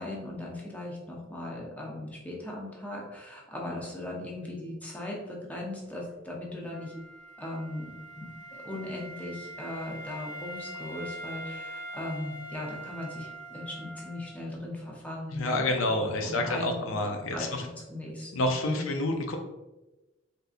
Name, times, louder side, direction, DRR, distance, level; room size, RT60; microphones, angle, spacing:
voice 1, 0.0-7.0 7.4-18.9, left 1 dB, 10° left, -3 dB, 0.6 m, -38 dB
Wind instrument woodwind instrument, 6.7-14.5, right 1 dB, 65° right, 0.6 m, -43 dB
voice 2, 15.3-17.5 18.3-19.4, left 1 dB, 90° left, 4 dB, 0.5 m, -28 dB
3.4 x 2.7 x 2.4 m, 1.1 s
head